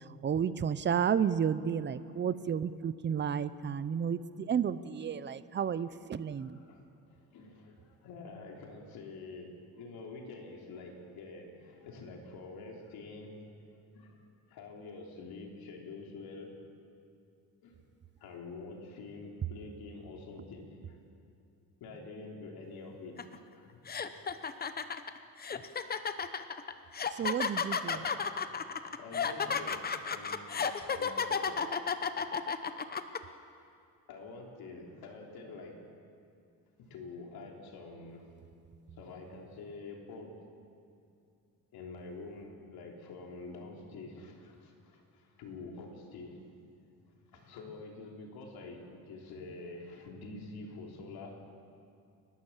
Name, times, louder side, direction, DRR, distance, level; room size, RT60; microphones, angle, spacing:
voice 1, 0.2-6.6 27.2-28.0, right 7 dB, 30° right, 15 dB, 0.6 m, -32 dB
voice 2, 1.9-2.2 6.4-13.6 13.9-16.6 17.6-17.8 18.2-21.1 21.8-24.2 27.9-28.2 28.6-31.7 34.1-35.8 36.8-38.3 39.0-40.4 41.7-46.5 47.0-51.5, left 3 dB, 85° left, 1 dB, 3.4 m, -47 dB
sound 1, 23.2-23.4 23.9-33.2, left 6 dB, 25° left, 0.8 m, -33 dB
29.5 x 12.0 x 7.3 m, 2.5 s
cardioid pair, 140°, 36 cm